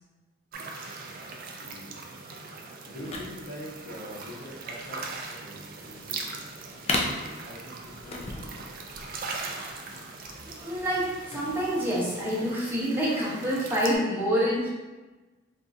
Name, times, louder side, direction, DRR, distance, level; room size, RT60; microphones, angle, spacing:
sound 1, 0.5-14.0, right 3 dB, 45° right, 0.3 m, -40 dB
voice 1, 1.6-2.0 2.9-5.0 5.3-6.3 7.2-8.5, equal, 55° left, -7 dB, 1.2 m, -43 dB
sound 2, 3.0-12.4, left 2 dB, 30° left, 0.4 m, -37 dB
voice 2, 10.6-14.7, equal, 10° right, -7 dB, 0.8 m, -27 dB
3.5 x 2.5 x 2.6 m, 1.2 s
head